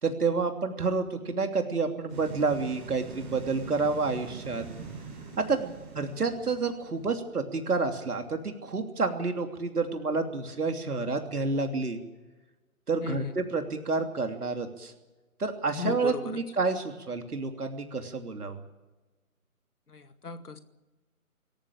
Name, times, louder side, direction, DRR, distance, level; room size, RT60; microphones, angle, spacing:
voice 1, 0.0-4.6 5.4-12.0 12.9-14.9 15.4-18.6, right 4 dB, 85° right, 5 dB, 3.2 m, -29 dB
sound 1, 2.1-7.1, right 5 dB, 5° right, 0.7 m, -43 dB
voice 2, 13.0-13.3 15.8-16.4 19.9-20.6, left 5 dB, 85° left, 9 dB, 2.3 m, -36 dB
25.5 x 14.0 x 8.9 m, 1.1 s
hypercardioid pair, 160°, 44 cm